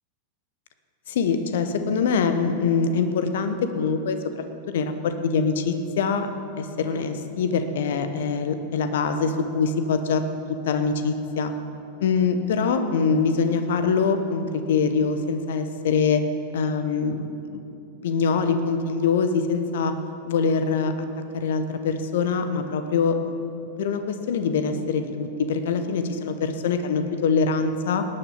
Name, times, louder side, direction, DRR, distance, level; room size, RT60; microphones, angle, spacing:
voice 1, 1.1-4.2 4.7-6.3 6.6-10.2 10.5-11.5 12.0-16.2 16.5-17.6 18.0-19.9 20.2-20.9 21.3-23.2 23.8-28.1, left 5 dB, 60° left, 8 dB, 1.1 m, -24 dB
18.5 x 10.0 x 5.8 m, 2.7 s
figure-of-eight pair, 90°, 0 cm